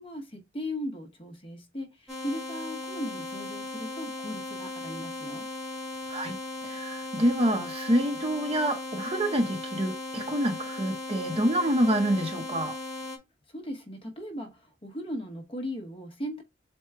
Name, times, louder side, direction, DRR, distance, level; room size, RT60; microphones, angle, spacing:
voice 1, 0.0-5.5 13.5-16.4, equal, 30° left, 0.9 m, -37 dB
sound 1, 2.1-13.2, left 2 dB, ahead, 1.2 m, -37 dB
voice 2, 6.6-12.8, right 1 dB, 30° right, 0.7 m, -27 dB
4.5 x 2.2 x 4.5 m
head